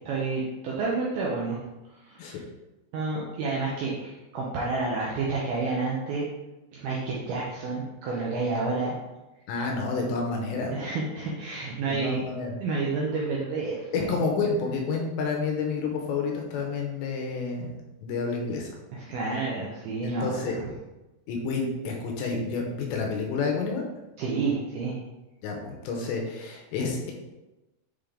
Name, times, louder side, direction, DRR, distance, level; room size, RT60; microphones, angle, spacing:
voice 1, 0.1-1.6 2.1-2.4 2.9-6.2 6.7-9.0 10.7-12.3 12.6-14.2 18.9-20.7 24.2-25.0, right 3 dB, 90° right, -4 dB, 2.2 m, -30 dB
voice 2, 9.5-10.8 11.9-12.6 13.9-17.7 18.0-18.7 20.0-20.6 21.3-23.8 25.4-27.1, left 4 dB, 80° left, 0 dB, 2.9 m, -29 dB
8.0 x 3.4 x 3.7 m, 1.0 s
omnidirectional pair, 5.4 m